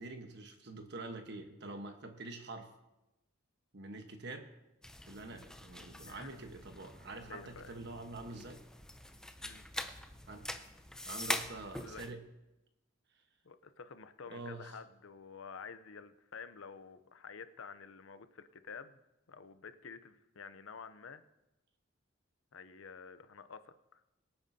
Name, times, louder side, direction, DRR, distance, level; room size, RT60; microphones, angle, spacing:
voice 1, 0.0-2.7 3.7-4.5 5.1-8.6 10.3-10.5 11.1-12.2 14.3-14.7, right 2 dB, 55° right, 5 dB, 1.2 m, -46 dB
sound 1, 4.8-12.1, left 1 dB, 5° left, 0.5 m, -44 dB
voice 2, 7.2-7.8 9.4-9.6 11.8-12.0 13.4-19.0 19.3-21.2 22.5-24.0, left 5 dB, 80° left, 11 dB, 0.7 m, -50 dB
23.0 x 9.0 x 2.8 m, 0.93 s
head